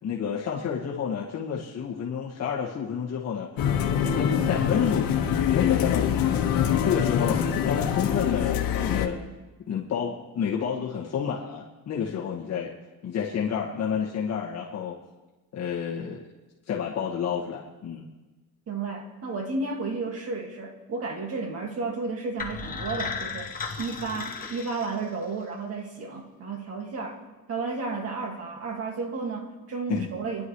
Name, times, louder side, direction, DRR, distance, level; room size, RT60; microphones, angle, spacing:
voice 1, 0.0-3.5 4.0-6.5 6.8-7.4 7.6-9.2 9.7-12.7 13.0-15.0 15.5-16.2 16.7-18.1 29.9-30.1, left 7 dB, 45° left, -4 dB, 1.8 m, -30 dB
sound 1, 3.6-9.1, left 9 dB, 70° left, 1.6 m, -24 dB
voice 2, 18.7-23.5 23.8-27.2 27.5-30.5, right 4 dB, 40° right, 2 dB, 2.1 m, -32 dB
sound 2, 22.4-25.4, left 5 dB, 25° left, 1.1 m, -35 dB
29.0 x 11.5 x 3.2 m, 1.2 s
cardioid pair, 165°, 37 cm